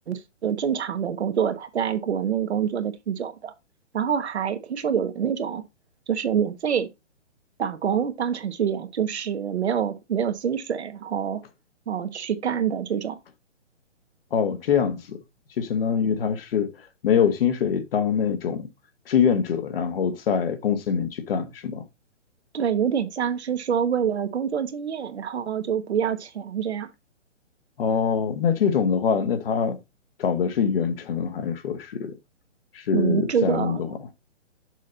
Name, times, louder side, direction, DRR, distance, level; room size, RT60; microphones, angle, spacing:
voice 1, 0.1-3.5 3.9-5.6 6.1-6.9 7.6-11.4 11.9-13.2 22.5-26.9 32.9-33.8, right 8 dB, 65° right, 1.2 m, -26 dB
voice 2, 14.3-15.2 15.6-16.7 17.0-18.7 19.1-21.8 27.8-29.8 30.2-32.1 32.7-33.8, left 7 dB, 50° left, 1.3 m, -24 dB
6.3 x 5.6 x 4.0 m
hypercardioid pair, 145°, 36 cm